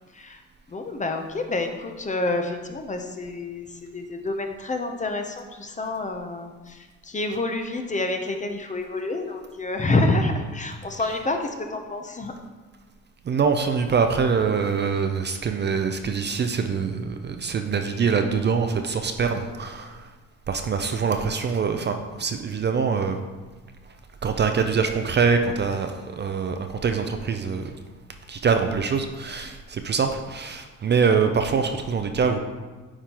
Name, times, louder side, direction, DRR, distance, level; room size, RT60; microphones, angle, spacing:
voice 1, 0.7-12.4, left 2 dB, 25° left, 5 dB, 0.7 m, -28 dB
voice 2, 13.2-20.1 20.5-23.2 24.2-27.7 28.3-32.4, right 5 dB, 35° right, 6 dB, 0.5 m, -24 dB
9.4 x 3.7 x 2.9 m, 1.3 s
cardioid pair, 90°, 30 cm